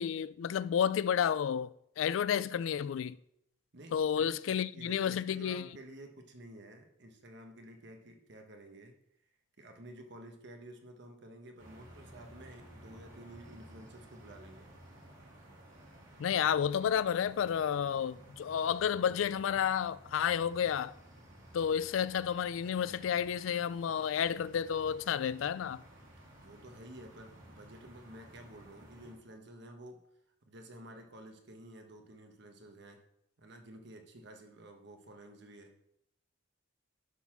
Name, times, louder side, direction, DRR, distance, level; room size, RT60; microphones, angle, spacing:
voice 1, 0.0-3.2 3.9-5.7 16.2-20.9 21.5-25.8, left 8 dB, 90° left, 0.3 m, -31 dB
voice 2, 3.7-9.0 9.6-14.7 26.3-30.0 30.4-33.0 33.4-35.7, right 1 dB, 65° right, 1.2 m, -52 dB
sound 1, 11.6-29.1, right 1 dB, 85° right, 2.7 m, -55 dB
11.0 x 4.1 x 5.9 m
head